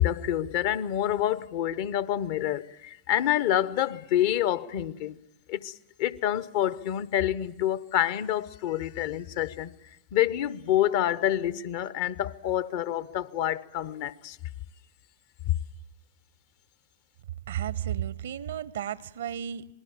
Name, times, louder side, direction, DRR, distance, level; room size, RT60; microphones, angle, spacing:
voice 1, 0.0-5.2 5.5-5.7 6.0-9.8 10.1-14.4, left 12 dB, 50° left, 0.8 m, -27 dB
voice 2, 17.5-19.7, right 10 dB, 60° right, 0.8 m, -33 dB
26.5 x 20.5 x 7.4 m
figure-of-eight pair, 90°, 0 cm